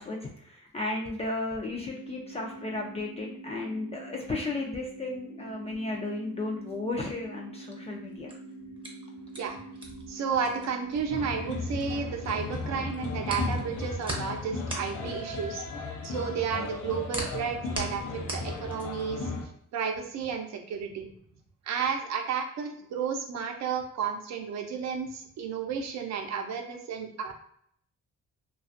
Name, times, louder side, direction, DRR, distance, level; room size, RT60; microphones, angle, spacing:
voice 1, 0.0-8.3 12.6-12.9, left 2 dB, 20° left, -2 dB, 0.4 m, -34 dB
sound 1, 1.7-11.7, right 2 dB, 40° left, 0.7 m, -45 dB
sound 2, 8.1-12.3 12.6-19.2, right 2 dB, 15° right, 0.7 m, -39 dB
voice 2, 10.1-15.6 16.0-19.3 19.7-21.1 21.6-27.3, right 6 dB, 65° right, 4 dB, 0.6 m, -32 dB
sound 3, 11.1-19.5, left 3 dB, 80° left, 0.6 m, -35 dB
2.4 x 2.3 x 2.5 m, 0.67 s
cardioid pair, 90°, 30 cm